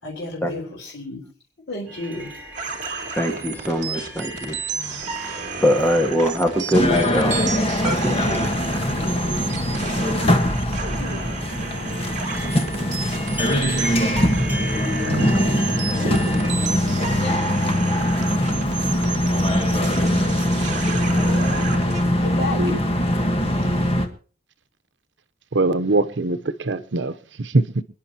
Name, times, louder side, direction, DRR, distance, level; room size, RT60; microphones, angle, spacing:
voice 1, 0.0-1.3 1.7-2.3 4.7-5.0 8.1-8.5 9.0-9.5 9.9-10.0 14.3-14.4 18.4-19.1 22.2-22.8 23.5-23.9, left 2 dB, 75° left, 3.8 m, -34 dB
sound 1, 1.9-16.5, right 1 dB, 10° right, 3.9 m, -37 dB
sound 2, 2.5-22.0, right 5 dB, 40° right, 2.8 m, -32 dB
voice 2, 3.2-4.6 5.6-7.5 7.8-8.3, equal, 10° left, 1.7 m, -22 dB
sound 3, 6.7-24.1, left 1 dB, 35° left, 1.4 m, -22 dB
voice 3, 15.0-15.6 16.0-16.4 22.6-22.8 25.5-27.8, right 2 dB, 85° right, 0.9 m, -23 dB
27.5 x 10.5 x 2.9 m
head